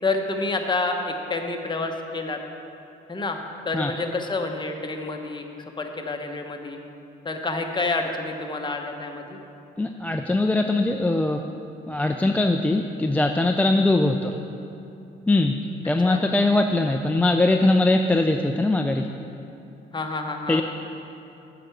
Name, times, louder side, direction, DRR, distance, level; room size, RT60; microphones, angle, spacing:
voice 1, 0.0-2.4 3.1-6.8 7.2-9.4 16.0-16.2 19.9-20.6, left 3 dB, 25° left, 3 dB, 1.0 m, -28 dB
voice 2, 9.8-11.4 11.8-14.3 15.3-15.6 15.8-19.1 20.5-20.6, left 2 dB, 5° left, 4 dB, 0.4 m, -21 dB
7.6 x 5.9 x 7.9 m, 2.8 s
cardioid pair, 90°, 20 cm